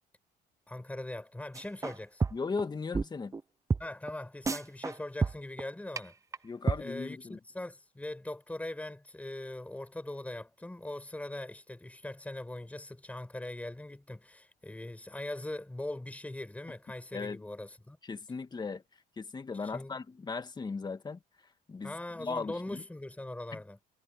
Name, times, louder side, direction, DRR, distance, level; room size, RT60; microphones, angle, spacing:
voice 1, 0.7-2.2 3.8-6.1 6.8-18.0 19.6-20.0 21.8-23.8, left 1 dB, 10° left, 6.4 m, -41 dB
sound 1, 1.5-2.0 2.2-2.6 2.9-3.0 3.3-3.4 3.7-3.8 4.1-4.2 4.5-4.9 5.2-5.6 6.0-6.1 6.3-6.4 6.7-6.8, right 4 dB, 20° right, 0.7 m, -29 dB
voice 2, 2.3-3.3 6.4-7.4 17.1-17.4 18.0-18.8 19.2-21.2 21.7-22.8 23.5-23.6, left 4 dB, 25° left, 1.8 m, -37 dB
cardioid pair, 110°, 17 cm